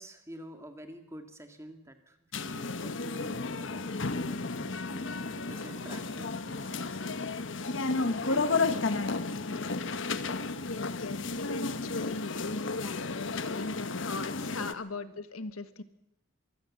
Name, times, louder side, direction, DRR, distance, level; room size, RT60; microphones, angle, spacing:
voice 1, 0.0-10.0, equal, 15° right, 6 dB, 2.0 m, -49 dB
sound 1, 2.3-14.7, left 3 dB, 60° left, 1.1 m, -33 dB
voice 2, 10.6-15.8, left 3 dB, 90° left, 11 dB, 1.5 m, -39 dB
23.5 x 16.5 x 7.5 m, 0.82 s
head